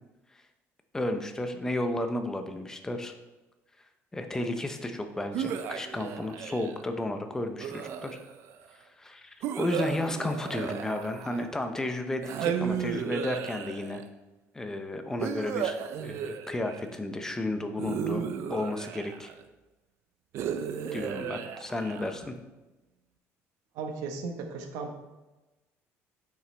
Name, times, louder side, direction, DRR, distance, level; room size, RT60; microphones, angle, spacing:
voice 1, 0.9-3.1 4.1-8.2 8.7-14.0 14.5-18.2 18.5-19.3 20.9-22.4, left 1 dB, 10° left, 6 dB, 0.6 m, -33 dB
sound 1, 5.3-6.9 7.6-8.5 9.4-11.6 12.2-14.1 15.2-17.0 17.8-19.4 20.3-22.3, right 8 dB, 55° right, 0.6 m, -34 dB
voice 2, 23.7-25.0, right 4 dB, 85° right, 4 dB, 1.2 m, -36 dB
9.0 x 5.7 x 3.3 m, 1.1 s
cardioid pair, 160°, 5 cm